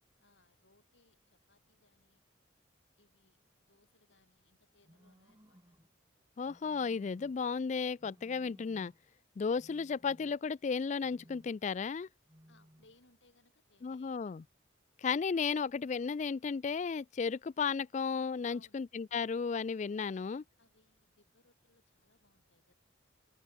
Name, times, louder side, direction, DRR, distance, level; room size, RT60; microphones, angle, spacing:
voice 1, 0.2-2.2 3.0-5.7 12.5-14.4 18.4-18.8 20.6-22.7, left 2 dB, 70° left, 6.9 m, -69 dB
sound 1, 4.8-5.9 6.4-7.5 8.0-9.1 9.5-10.6 11.0-11.7 12.2-13.0, equal, 20° right, 4.8 m, -62 dB
voice 2, 6.4-8.9 9.4-12.1 13.8-14.4 15.0-20.4, left 5 dB, 35° left, 0.3 m, -34 dB
head